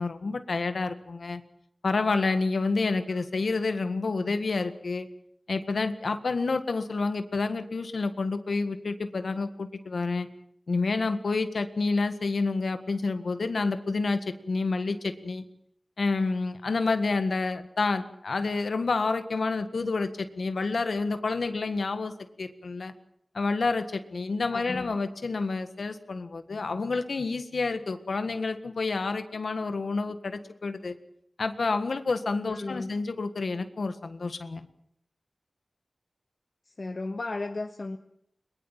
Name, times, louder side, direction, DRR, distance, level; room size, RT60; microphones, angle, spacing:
voice 1, 0.0-1.4 1.8-5.1 5.5-10.3 10.7-15.4 16.0-22.1 22.4-22.9 23.3-31.0 31.4-34.7, left 3 dB, 90° left, 10 dB, 1.7 m, -29 dB
voice 2, 24.5-24.9 32.5-32.9 36.8-38.0, left 2 dB, 55° left, 6 dB, 1.4 m, -34 dB
22.0 x 21.5 x 7.5 m, 0.71 s
wide cardioid pair, 70°, 0 cm